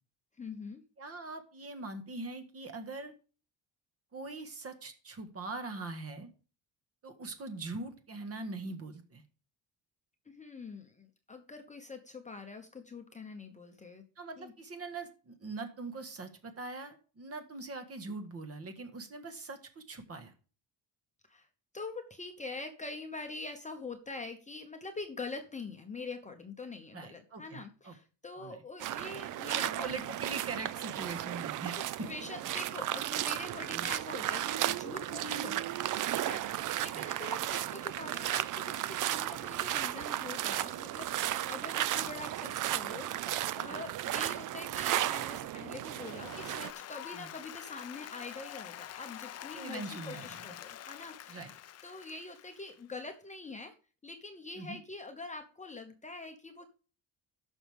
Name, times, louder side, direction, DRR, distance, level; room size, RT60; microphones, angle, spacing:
voice 1, 0.4-0.8 10.3-14.0 14.4-14.5 21.3-21.5 21.7-29.9 32.0-35.8 36.1-53.7 54.0-56.6, left 3 dB, 15° left, 5 dB, 0.9 m, -44 dB
voice 2, 1.0-3.1 4.1-6.3 7.0-9.2 14.2-20.3 26.9-27.9 28.4-28.6 29.5-32.1 33.7-33.9 36.9-37.1 42.0-42.1 43.7-43.8 47.1-47.3 49.5-50.4 51.3-51.5 54.6-54.8, right 3 dB, 35° right, 7 dB, 1.7 m, -42 dB
sound 1, 28.8-46.7, right 13 dB, 50° right, 0.5 m, -34 dB
Applause, 45.7-52.9, left 11 dB, 40° left, 0.5 m, -47 dB
14.5 x 6.2 x 3.6 m, 0.37 s
cardioid pair, 145°, 43 cm